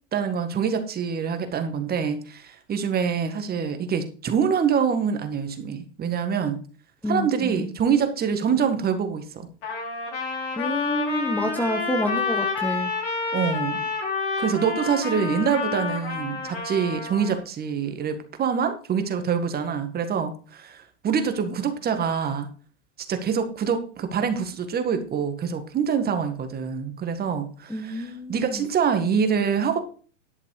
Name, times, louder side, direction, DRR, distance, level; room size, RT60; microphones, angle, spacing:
voice 1, 0.1-6.6 7.1-9.5 13.3-13.8 14.4-22.5 23.1-29.8, right 7 dB, 25° right, 8 dB, 1.9 m, -25 dB
voice 2, 7.0-7.7 10.6-12.9 27.7-28.6, equal, 5° left, 6 dB, 1.2 m, -28 dB
Trumpet, 9.6-17.4, left 4 dB, 60° left, 5.8 m, -29 dB
11.0 x 6.6 x 4.9 m, 0.39 s
hypercardioid pair, 110°, 36 cm